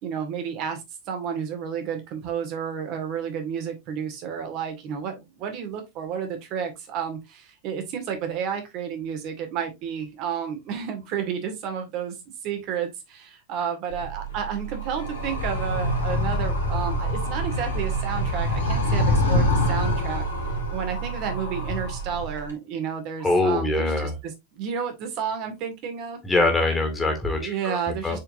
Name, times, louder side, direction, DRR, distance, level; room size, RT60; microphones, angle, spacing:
voice 1, 0.0-0.8 1.1-12.1 12.4-20.3 20.7-26.2 27.4-28.2, right 7 dB, 40° right, 2.1 m, -31 dB
Animal, 13.9-22.5, equal, 70° left, 2.3 m, -26 dB
voice 2, 23.2-24.1 26.2-27.8 28.0-28.2, left 2 dB, 10° left, 2.2 m, -23 dB
7.7 x 4.7 x 2.7 m
figure-of-eight pair, 90°, 0 cm